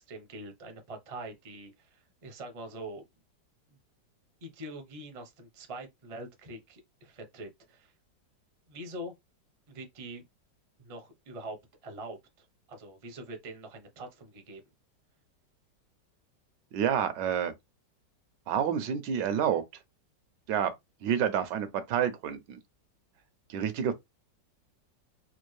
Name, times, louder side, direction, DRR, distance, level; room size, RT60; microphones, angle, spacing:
voice 1, 0.0-3.0 4.4-7.9 8.7-9.1 9.7-10.2 10.8-11.6 11.8-14.6, right 1 dB, 40° right, 0.5 m, -44 dB
voice 2, 16.7-17.5 18.5-19.6 20.5-20.7 21.0-22.6 23.5-23.9, right 8 dB, 75° right, 1.3 m, -28 dB
4.3 x 2.4 x 3.1 m
omnidirectional pair, 2.0 m